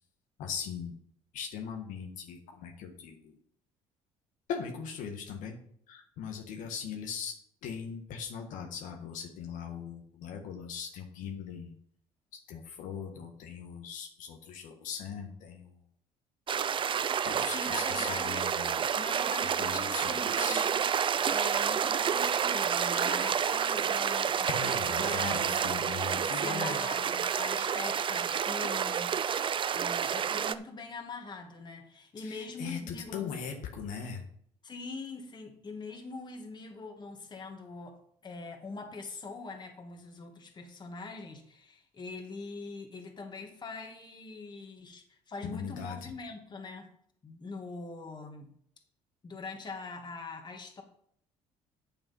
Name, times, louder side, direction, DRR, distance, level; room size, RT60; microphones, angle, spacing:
voice 1, 0.4-0.9 1.3-3.4 4.5-5.6 5.9-7.3 7.6-11.7 12.3-15.8 17.2-18.9 19.6-20.7 24.5-26.8 32.2-34.2 45.4-46.1, left 7 dB, 75° left, 2 dB, 1.6 m, -40 dB
sound 1, 16.5-30.5, right 8 dB, 40° right, 0.5 m, -29 dB
voice 2, 17.5-18.4 19.0-20.9 21.3-29.1 29.7-33.3 34.6-46.9 47.2-48.5 49.2-50.8, left 3 dB, 35° left, 3 dB, 2.3 m, -43 dB
8.5 x 7.0 x 5.5 m, 0.65 s
supercardioid pair, 90°, 14 cm